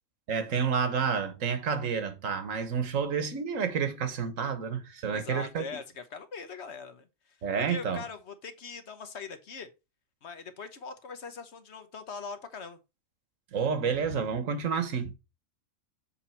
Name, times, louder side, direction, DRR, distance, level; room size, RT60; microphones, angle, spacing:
voice 1, 0.3-5.6 7.4-8.0 13.5-15.1, right 6 dB, 70° right, 1.4 m, -29 dB
voice 2, 5.1-9.7 10.2-12.8, left 5 dB, 55° left, 1.2 m, -42 dB
7.0 x 4.3 x 4.4 m
omnidirectional pair, 1.4 m